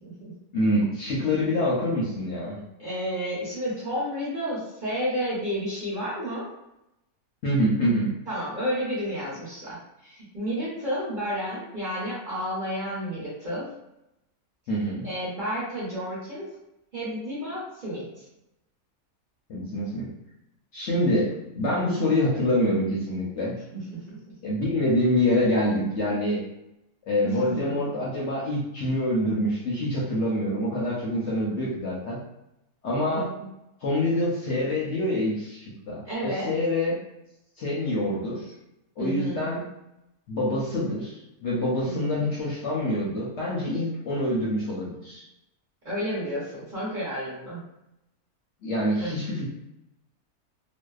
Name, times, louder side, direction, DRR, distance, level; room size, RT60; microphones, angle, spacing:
voice 1, 0.0-0.3 2.5-6.5 8.3-9.8 10.0-13.7 15.0-16.4 16.9-18.3 23.7-24.2 27.2-27.5 33.0-33.3 36.0-36.5 39.0-39.4 41.8-42.3 45.8-47.6 49.0-49.1, equal, 40° right, -9 dB, 0.8 m, -31 dB
voice 2, 0.5-2.6 7.4-8.1 14.7-15.1 19.5-20.1 20.7-21.3 21.6-23.6 24.4-26.4 27.1-32.2 32.8-33.3 33.8-37.0 37.6-38.5 39.0-39.6 40.3-45.2 48.6-49.5, left 1 dB, 65° left, -6 dB, 0.8 m, -26 dB
2.6 x 2.1 x 2.3 m, 0.88 s
omnidirectional pair, 1.6 m